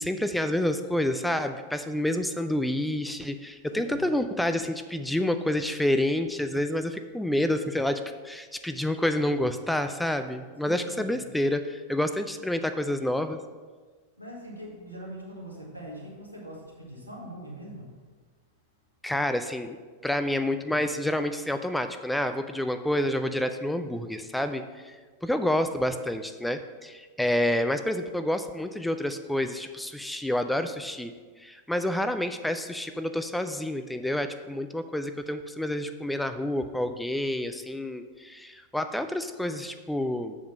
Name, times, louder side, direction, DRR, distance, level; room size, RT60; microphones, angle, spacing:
voice 1, 0.0-13.4 19.0-19.8 20.0-25.0 25.2-31.1 31.4-40.4, left 1 dB, 5° left, 8 dB, 0.4 m, -28 dB
voice 2, 3.7-4.1 10.6-11.2 14.2-17.9, equal, 85° right, -3 dB, 1.8 m, -42 dB
7.0 x 5.0 x 5.4 m, 1.4 s
figure-of-eight pair, 90°, 0 cm